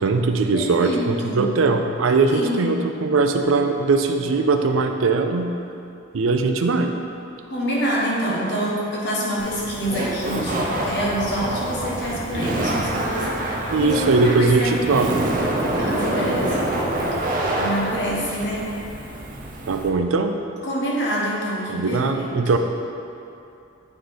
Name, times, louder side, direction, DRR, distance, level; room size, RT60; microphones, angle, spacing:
voice 1, 0.0-5.5 6.1-6.9 13.7-15.2 19.7-20.4 21.7-22.6, right 3 dB, 85° right, 5 dB, 0.5 m, -20 dB
voice 2, 0.5-1.5 2.3-2.8 7.5-15.0 15.8-16.6 17.6-18.7 20.6-22.4, equal, 60° left, -5 dB, 1.3 m, -26 dB
Laughter, 9.4-19.9, right 1 dB, 45° right, 0.7 m, -26 dB
9.1 x 3.2 x 3.9 m, 2.7 s
head